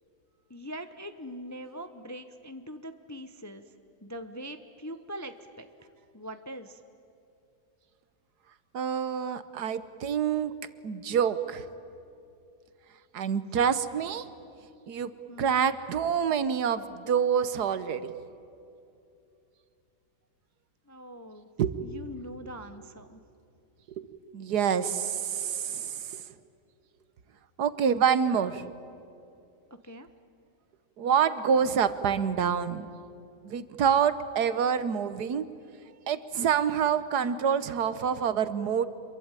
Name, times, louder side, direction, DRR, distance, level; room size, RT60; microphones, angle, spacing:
voice 1, 0.5-3.6 4.0-5.7 6.1-6.8 13.5-13.7 15.3-15.5 20.9-21.5 21.8-23.2 29.9-30.1, equal, 15° left, 9 dB, 0.6 m, -42 dB
voice 2, 8.7-10.5 10.8-11.7 13.1-14.3 14.9-15.1 15.4-18.1 21.6-21.7 24.0-24.1 24.3-26.2 27.6-28.6 31.0-32.9 33.4-35.5 36.1-38.9, right 7 dB, 75° right, 13 dB, 1.6 m, -27 dB
26.5 x 23.0 x 9.0 m, 2.7 s
omnidirectional pair, 1.8 m